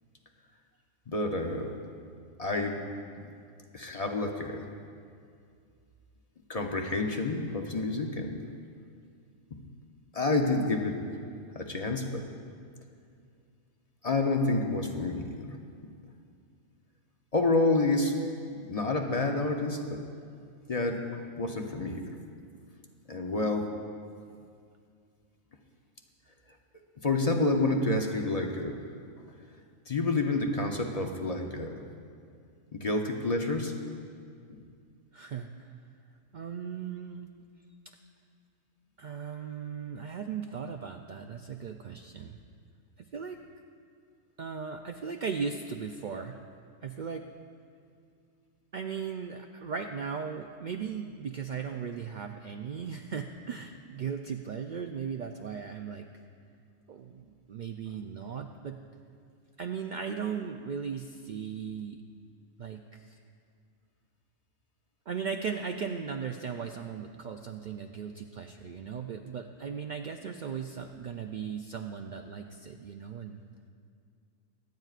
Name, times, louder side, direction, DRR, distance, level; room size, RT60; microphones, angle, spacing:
voice 1, 1.1-1.7 2.4-2.8 3.1-3.3 3.7-4.7 6.5-8.5 9.5-9.6 10.1-11.1 11.5-12.3 14.0-15.6 17.3-18.2 18.5-20.0 20.7-22.2 23.1-23.7 27.0-28.8 29.9-31.8 32.7-33.8 34.5-34.6, left 2 dB, 35° left, 2 dB, 0.7 m, -29 dB
voice 2, 35.1-35.7 36.3-37.3 39.0-42.4 43.0-43.4 44.4-46.4 46.8-47.2 48.7-56.1 56.9-58.8 59.6-62.0 62.6-63.2 65.1-73.4, right 6 dB, 90° right, 4 dB, 0.4 m, -37 dB
24.5 x 9.2 x 2.5 m, 2.3 s
omnidirectional pair, 1.3 m